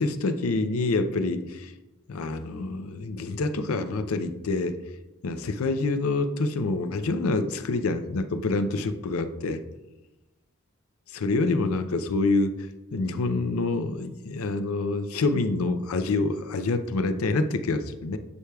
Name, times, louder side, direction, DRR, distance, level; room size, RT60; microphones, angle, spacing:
voice 1, 0.0-1.7 2.1-4.8 5.2-9.6 11.1-12.5 12.9-18.2, left 3 dB, 90° left, 10 dB, 0.5 m, -26 dB
9.5 x 4.8 x 2.3 m, 1.0 s
head